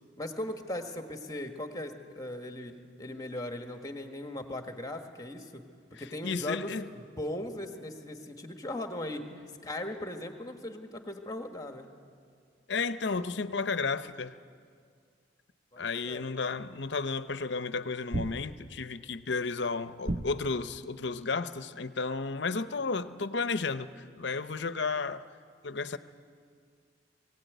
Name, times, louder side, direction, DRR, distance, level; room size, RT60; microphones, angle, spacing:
voice 1, 0.2-5.6 5.9-9.3 9.6-11.9 15.7-16.2, left 1 dB, 20° left, 1.4 m, -38 dB
voice 2, 6.2-6.8 12.7-14.3 15.8-23.9 24.2-25.2 25.6-26.0, left 4 dB, 65° left, 0.7 m, -32 dB
sound 1, 18.1-18.9 20.0-20.8, right 1 dB, 35° right, 0.7 m, -35 dB
21.5 x 16.5 x 9.3 m
head